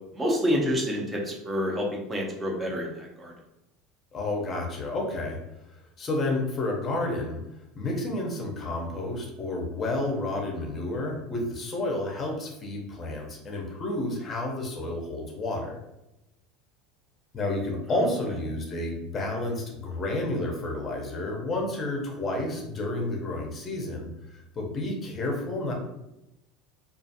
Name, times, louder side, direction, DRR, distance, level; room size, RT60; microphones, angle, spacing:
voice 1, 0.1-3.3 18.0-18.1, equal, 15° right, -1 dB, 0.6 m, -28 dB
voice 2, 4.1-5.4 6.0-7.4 7.8-15.7 17.3-25.7, left 2 dB, 25° left, 0 dB, 0.7 m, -30 dB
2.4 x 2.4 x 2.7 m, 0.90 s
supercardioid pair, 145°, 0 cm